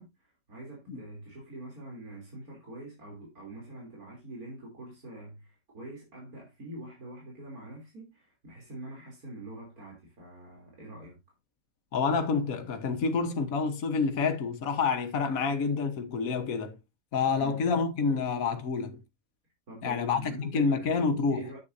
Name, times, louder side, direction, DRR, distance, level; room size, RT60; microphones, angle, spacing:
voice 1, 0.0-11.2 17.4-17.6 19.7-21.6, right 1 dB, 80° right, 3.7 m, -45 dB
voice 2, 11.9-16.8 17.1-19.0 19.8-21.5, left 5 dB, 70° left, 1.6 m, -28 dB
9.7 x 8.3 x 2.7 m
omnidirectional pair, 1.5 m